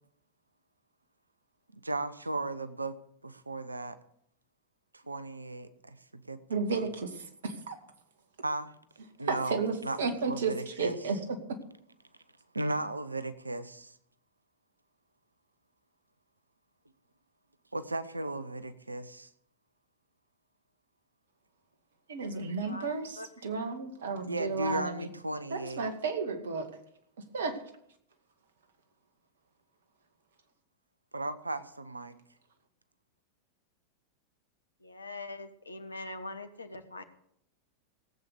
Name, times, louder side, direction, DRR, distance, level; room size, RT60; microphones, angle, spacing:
voice 1, 1.7-3.0 3.2-4.0 4.9-6.9 8.4-8.7 9.2-10.0 10.2-10.9 12.5-13.9 17.7-19.3 24.2-25.8 31.1-32.2, right 2 dB, 80° right, 13 dB, 0.9 m, -36 dB
voice 2, 6.5-7.8 9.3-11.2 22.1-25.1 25.5-26.7 27.3-27.6, right 4 dB, 65° right, 7 dB, 2.1 m, -33 dB
voice 3, 22.6-23.3 34.8-37.0, left 2 dB, 80° left, 9 dB, 1.4 m, -43 dB
17.5 x 8.3 x 6.8 m, 0.71 s
figure-of-eight pair, 90°, 0 cm